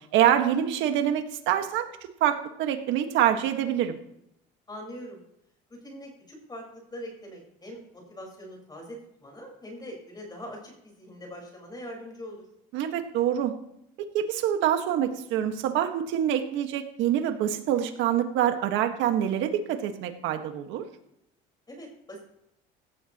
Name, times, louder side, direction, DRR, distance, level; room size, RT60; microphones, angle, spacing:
voice 1, 0.1-1.8 2.2-4.0 12.7-13.5 14.0-20.8, right 10 dB, 75° right, 6 dB, 1.6 m, -25 dB
voice 2, 4.7-5.2 5.8-12.4 21.7-22.2, equal, 20° left, 0 dB, 4.9 m, -42 dB
17.0 x 13.0 x 3.0 m, 0.78 s
supercardioid pair, 100°, 20 cm